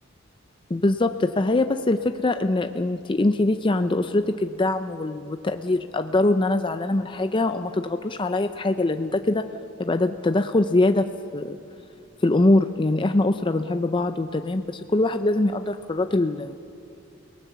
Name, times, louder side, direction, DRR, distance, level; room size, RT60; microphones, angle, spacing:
voice 1, 0.7-9.5 9.8-11.6 12.2-16.6, left 2 dB, 25° left, 8 dB, 0.5 m, -23 dB
29.5 x 18.5 x 6.9 m, 2.4 s
head